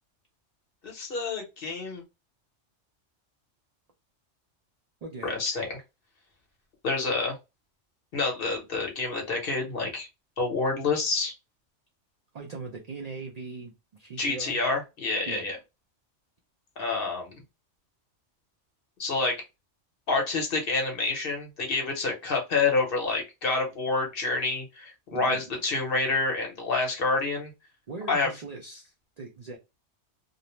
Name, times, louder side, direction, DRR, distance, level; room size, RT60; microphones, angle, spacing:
voice 1, 0.8-2.0 5.2-5.8 6.8-7.4 8.1-10.1 10.4-11.3 14.2-15.6 16.8-17.3 19.0-19.4 20.1-27.5 28.1-28.3, left 3 dB, 55° left, 1 dB, 0.9 m, -28 dB
voice 2, 5.0-5.4 12.3-14.6 15.3-15.4 25.1-25.4 27.9-29.6, right 4 dB, 65° right, 1 dB, 0.4 m, -40 dB
2.5 x 2.0 x 2.9 m, 0.25 s
omnidirectional pair, 1.2 m